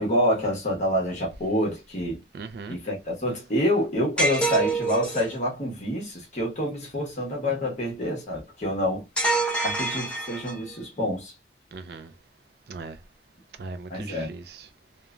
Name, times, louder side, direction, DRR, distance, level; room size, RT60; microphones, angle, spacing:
voice 1, 0.0-2.2 2.7-9.0 9.6-11.3 13.9-14.3, equal, 40° left, 1.2 m, -27 dB
voice 2, 2.3-2.8 11.7-12.1 12.7-13.0 13.6-14.7, right 4 dB, 60° right, 0.3 m, -39 dB
sound 1, 4.2-5.4 9.2-10.7, right 2 dB, 5° left, 0.6 m, -26 dB
2.9 x 2.2 x 2.4 m
head